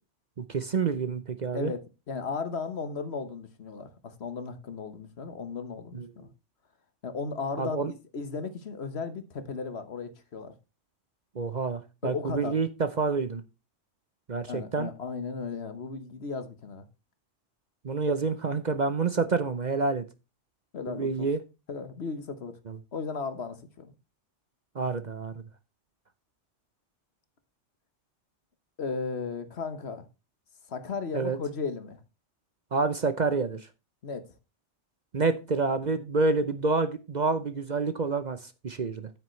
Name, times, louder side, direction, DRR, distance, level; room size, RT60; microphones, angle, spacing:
voice 1, 0.4-1.7 5.9-6.1 7.6-7.9 11.4-13.4 14.3-14.9 17.8-20.0 20.9-21.4 22.7-22.8 24.7-25.3 31.1-31.4 32.7-33.6 35.1-39.1, right 4 dB, 45° right, 0.8 m, -28 dB
voice 2, 1.5-6.3 7.0-10.5 12.0-12.6 14.4-16.8 20.7-21.3 21.7-22.6 22.9-23.9 28.8-30.1 30.7-32.0 34.0-34.3, left 4 dB, 65° left, 1.4 m, -35 dB
9.2 x 8.7 x 3.2 m
omnidirectional pair, 1.2 m